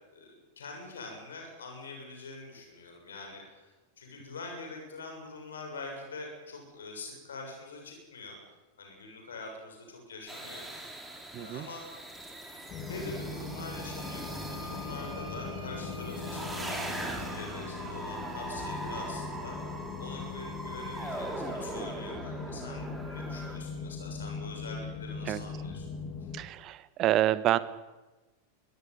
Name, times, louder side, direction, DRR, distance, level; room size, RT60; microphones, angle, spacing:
voice 1, 0.1-8.4 8.8-11.9 12.8-25.9, left 3 dB, 65° left, 2 dB, 7.4 m, -44 dB
sound 1, 10.3-23.6, right 1 dB, 5° right, 5.0 m, -41 dB
voice 2, 11.3-11.7 25.2-25.4 26.3-27.6, right 13 dB, 35° right, 16 dB, 1.4 m, -28 dB
sound 2, 12.7-26.4, left 4 dB, 30° left, 3.2 m, -40 dB
22.5 x 20.0 x 9.6 m, 1.1 s
figure-of-eight pair, 90°, 0 cm